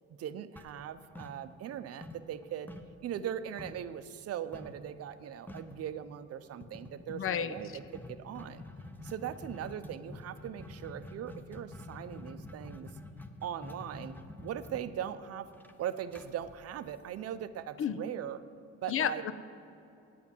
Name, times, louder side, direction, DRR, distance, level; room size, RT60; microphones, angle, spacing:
voice 1, 0.2-2.7 3.0-8.6 9.0-12.9 13.4-15.5 15.8-18.4 18.8-19.2, right 10 dB, 55° right, 12 dB, 0.6 m, -40 dB
sound 1, 0.6-1.7 2.0-3.9 4.5-4.8 5.1-5.2 5.5-5.8 6.6-17.4, left 2 dB, 5° left, 0.8 m, -47 dB
voice 2, 7.1-7.6 17.8-18.0 18.9-19.3, left 9 dB, 45° left, 14 dB, 0.6 m, -31 dB
9.1 x 8.4 x 7.2 m, 2.8 s
cardioid pair, 90°, 29 cm